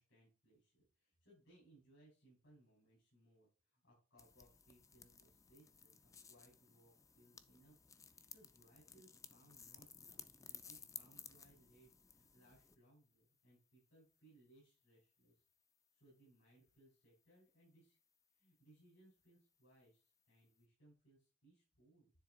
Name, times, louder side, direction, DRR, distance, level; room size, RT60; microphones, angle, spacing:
voice 1, 0.0-7.8 8.0-15.4 15.9-18.0 18.3-22.1, right 1 dB, 85° left, -5 dB, 4.3 m, -69 dB
sound 1, 4.2-12.8, left 6 dB, 15° left, 0.4 m, -58 dB
9.8 x 3.7 x 3.8 m, 0.35 s
head